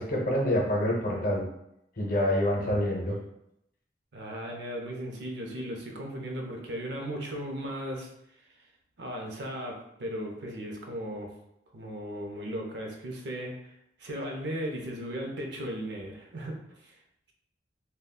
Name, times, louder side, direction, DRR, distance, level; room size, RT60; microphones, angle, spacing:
voice 1, 0.0-1.4 2.0-3.2, left 1 dB, 50° left, -1 dB, 0.7 m, -26 dB
voice 2, 4.1-8.1 9.0-11.3 11.7-13.7 14.0-17.0, equal, 70° right, 1 dB, 0.5 m, -36 dB
3.5 x 2.2 x 2.2 m, 0.79 s
head